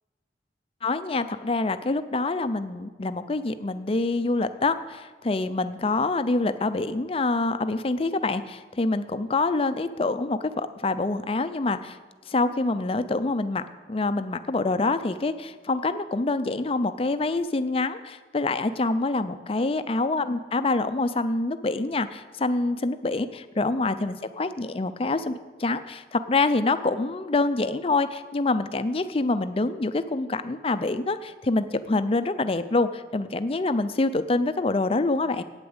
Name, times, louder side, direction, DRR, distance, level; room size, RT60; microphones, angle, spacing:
voice 1, 0.8-12.0 12.3-13.6 13.9-35.4, left 3 dB, 30° left, 11 dB, 0.5 m, -26 dB
9.0 x 8.3 x 7.9 m, 1.4 s
head